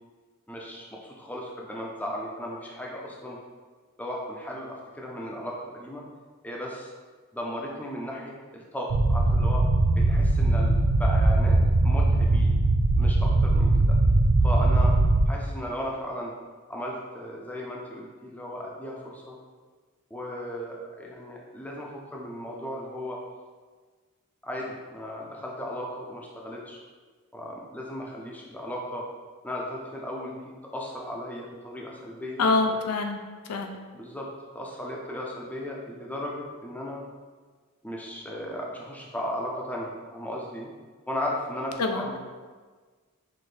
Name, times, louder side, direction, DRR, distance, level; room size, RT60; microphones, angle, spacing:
voice 1, 0.5-3.4 4.0-6.0 6.4-6.9 7.3-9.7 9.9-12.6 13.0-14.0 14.4-15.0 15.3-16.3 16.7-19.4 20.1-23.2 24.4-26.8 27.3-29.1 29.4-32.8 33.9-37.0 37.8-40.7 41.1-42.2, equal, 5° left, -2 dB, 0.5 m, -36 dB
sound 1, 8.9-15.3, right 2 dB, 85° right, 0.5 m, -21 dB
voice 2, 32.4-33.2 33.5-33.8 41.8-42.2, left 3 dB, 85° left, 5 dB, 0.5 m, -25 dB
5.8 x 2.5 x 3.3 m, 1.4 s
head